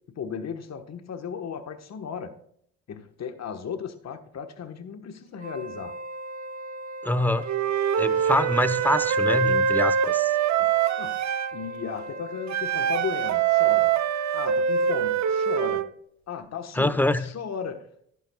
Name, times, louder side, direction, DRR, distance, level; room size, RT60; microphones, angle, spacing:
voice 1, 0.1-2.4 2.9-6.0 10.6-10.7 11.0-11.2 11.5-13.9 14.3-15.9 16.3-17.9, left 7 dB, 50° left, 7 dB, 1.3 m, -35 dB
Wind instrument woodwind instrument, 5.3-15.9, right 1 dB, 25° right, 0.9 m, -39 dB
voice 2, 7.0-7.4 8.0-10.3 16.8-17.2, left 1 dB, 5° left, 13 dB, 0.9 m, -25 dB
Wind instrument woodwind instrument 2, 7.5-11.5 12.5-15.9, right 7 dB, 55° right, 0.7 m, -24 dB
12.0 x 11.5 x 2.3 m, 0.69 s
hypercardioid pair, 50°, 35 cm